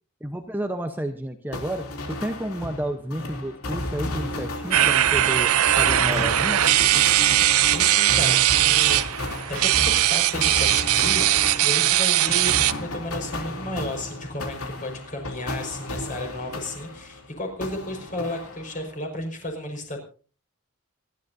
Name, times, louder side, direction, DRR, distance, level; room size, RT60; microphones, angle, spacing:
voice 1, 0.2-6.6, right 1 dB, 10° right, 5 dB, 0.9 m, -31 dB
sound 1, 1.5-17.3 17.6-19.0, left 1 dB, 85° left, 3.1 m, -33 dB
sound 2, 4.7-12.7, right 13 dB, 85° right, 0.7 m, -20 dB
voice 2, 7.3-9.0 9.5-20.0, left 1 dB, 35° left, 3 dB, 5.2 m, -33 dB
27.0 x 12.0 x 2.7 m, 0.38 s
head